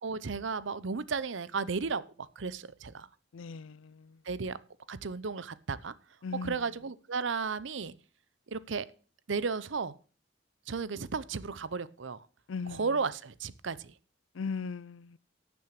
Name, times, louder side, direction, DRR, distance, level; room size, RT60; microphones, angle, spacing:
voice 1, 0.0-3.1 4.2-4.6 4.9-5.9 6.4-7.9 8.5-8.9 9.3-9.9 10.7-12.2 12.7-13.9, right 4 dB, 75° right, 0.7 m, -34 dB
voice 2, 3.3-4.1 6.2-6.6 12.5-12.9 14.4-15.2, left 5 dB, 90° left, 0.5 m, -38 dB
12.0 x 7.2 x 6.5 m
head